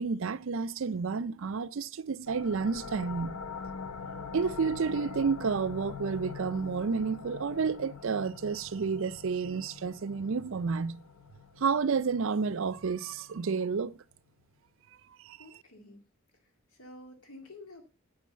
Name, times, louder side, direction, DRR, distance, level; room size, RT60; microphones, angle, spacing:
voice 1, 0.0-3.4 4.3-11.0 11.6-14.0 15.3-15.4, right 5 dB, 60° right, 0.5 m, -30 dB
sound 1, 2.3-13.6, left 5 dB, 85° left, 0.9 m, -44 dB
voice 2, 15.4-16.0 16.7-17.8, left 2 dB, 70° left, 2.1 m, -50 dB
9.5 x 6.1 x 6.7 m
head